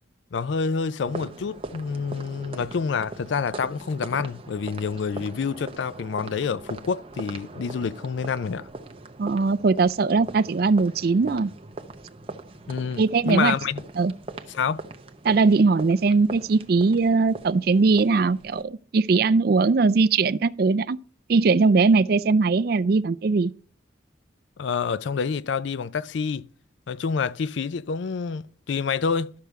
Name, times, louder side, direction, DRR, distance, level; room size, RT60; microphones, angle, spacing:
voice 1, 0.3-8.7 12.7-13.8 14.5-14.8 24.6-26.5 26.9-29.3, left 5 dB, 70° left, 0.4 m, -27 dB
sound 1, 1.0-18.6, right 2 dB, 30° right, 0.8 m, -41 dB
voice 2, 9.2-11.5 13.0-13.5 14.0-14.1 15.2-21.0 21.3-23.5, right 4 dB, 50° right, 0.4 m, -20 dB
12.0 x 6.7 x 4.7 m
head